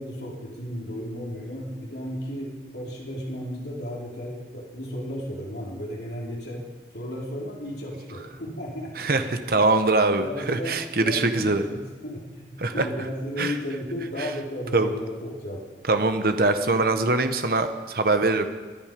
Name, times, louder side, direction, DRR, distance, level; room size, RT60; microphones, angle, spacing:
voice 1, 0.0-6.6 6.9-8.9 10.2-10.7 11.0-15.6, equal, 70° left, -3 dB, 3.5 m, -34 dB
voice 2, 9.0-11.6 12.6-12.9 13.4-13.5 14.2-14.3 14.7-14.9 15.9-18.5, right 3 dB, 55° right, 8 dB, 1.0 m, -23 dB
20.0 x 10.5 x 5.2 m, 1.4 s
head